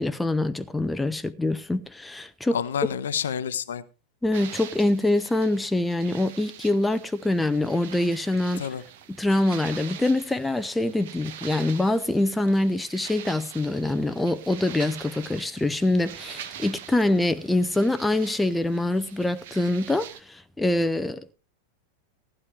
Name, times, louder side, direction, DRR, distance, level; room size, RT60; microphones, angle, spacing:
voice 1, 0.0-2.6 4.2-8.7 9.1-21.3, left 2 dB, 5° left, 0.6 m, -25 dB
voice 2, 2.5-3.8 8.6-8.8, left 8 dB, 65° left, 0.8 m, -29 dB
sound 1, 4.3-20.2, right 10 dB, 55° right, 1.0 m, -44 dB
15.0 x 11.0 x 3.3 m
figure-of-eight pair, 90°, 0 cm